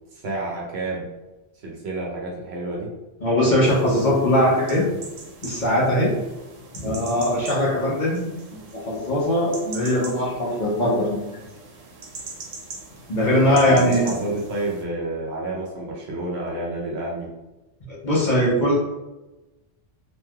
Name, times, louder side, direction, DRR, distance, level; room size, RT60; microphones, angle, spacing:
voice 1, 0.1-1.1 1.6-2.9 13.5-17.3, right 2 dB, 65° right, -3 dB, 0.9 m, -29 dB
voice 2, 3.2-4.9 5.4-6.1 6.7-8.2 8.5-11.4 13.1-14.1 17.9-18.8, left 1 dB, 45° left, -6 dB, 0.8 m, -21 dB
sound 1, 3.6-14.8, right 3 dB, 85° right, 1.0 m, -41 dB
3.1 x 2.7 x 2.2 m, 1.0 s
omnidirectional pair, 1.3 m